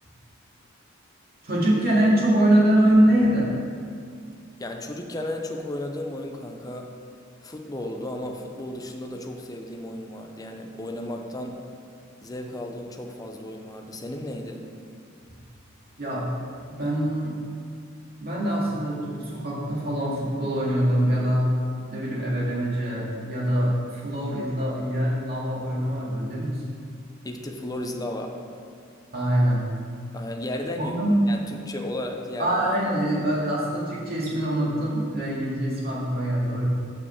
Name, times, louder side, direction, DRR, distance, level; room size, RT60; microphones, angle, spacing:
voice 1, 1.4-3.5 16.0-16.3 16.7-17.4 18.2-21.6 21.9-26.6 29.1-29.6 30.8-31.1 32.4-36.6, right 1 dB, 50° right, -6 dB, 2.1 m, -24 dB
voice 2, 4.6-7.0 7.4-11.7 12.2-14.7 27.2-28.4 30.1-31.0 31.3-32.6, left 1 dB, 20° left, 3 dB, 0.6 m, -34 dB
6.5 x 5.2 x 7.1 m, 2.3 s
head